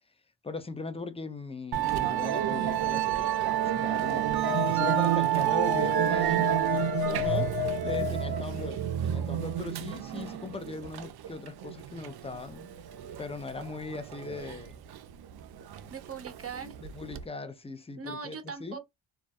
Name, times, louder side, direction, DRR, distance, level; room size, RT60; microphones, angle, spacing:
voice 1, 0.4-6.5 7.1-7.5 7.8-12.7 13.2-14.8 15.8-15.9 16.8-18.8, left 4 dB, 15° left, 0.5 m, -39 dB
Musical instrument, 1.7-17.2, right 12 dB, 50° right, 0.5 m, -30 dB
sound 1, 4.2-9.0, left 20 dB, 75° left, 1.2 m, -34 dB
voice 2, 6.3-7.1 15.9-16.7 18.0-18.8, right 5 dB, 30° right, 0.8 m, -41 dB
2.3 x 2.1 x 2.6 m
cardioid pair, 55°, 49 cm